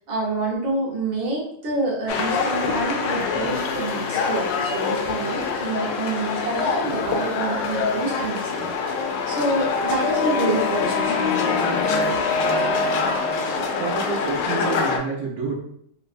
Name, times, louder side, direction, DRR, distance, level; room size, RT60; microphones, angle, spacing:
voice 1, 0.1-8.8 9.3-12.1, right 2 dB, 65° right, -5 dB, 1.7 m, -27 dB
sound 1, 2.1-15.0, left 5 dB, 75° left, 1.1 m, -24 dB
voice 2, 13.5-15.5, right 5 dB, 90° right, -4 dB, 1.6 m, -29 dB
4.5 x 2.1 x 2.4 m, 0.69 s
omnidirectional pair, 2.2 m